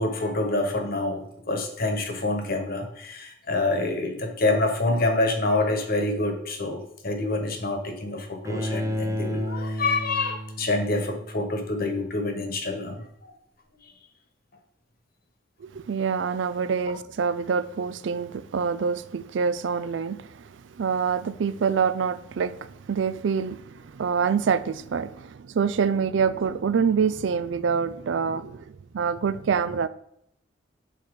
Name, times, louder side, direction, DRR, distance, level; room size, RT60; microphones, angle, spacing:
voice 1, 0.0-13.3 13.8-13.9, left 2 dB, 55° left, 1.2 m, -27 dB
Bowed string instrument, 8.4-11.5, equal, 15° right, 0.5 m, -31 dB
voice 2, 15.6-29.9, right 6 dB, 75° right, 0.4 m, -26 dB
6.2 x 4.1 x 4.9 m
head